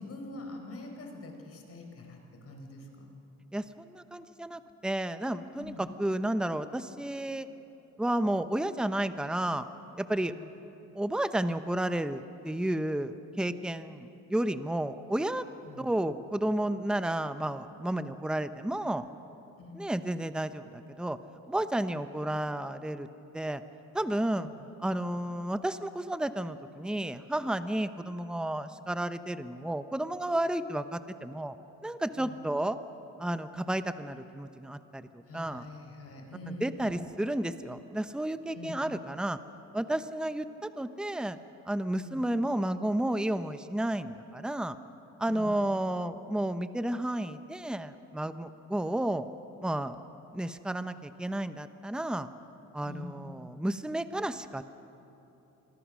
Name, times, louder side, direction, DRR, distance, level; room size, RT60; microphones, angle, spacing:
voice 1, 0.0-3.1 5.6-5.9 10.3-10.5 15.6-15.9 19.6-19.9 24.3-24.6 32.2-32.4 35.3-37.1 38.5-38.8 42.0-42.2 45.3-45.5 52.8-53.2, left 2 dB, 50° left, 3 dB, 4.6 m, -44 dB
voice 2, 3.5-7.5 8.0-9.7 10.0-10.3 10.9-15.4 15.8-19.1 19.7-21.2 21.5-23.1 23.3-23.6 23.9-24.5 24.8-31.6 31.8-32.8 33.2-35.7 36.6-39.4 39.7-41.4 41.7-44.8 45.2-49.3 49.6-50.0 50.3-52.3 52.7-54.7, right 1 dB, 5° right, 11 dB, 0.8 m, -32 dB
26.5 x 22.0 x 6.3 m, 3.0 s
cardioid pair, 90°, 30 cm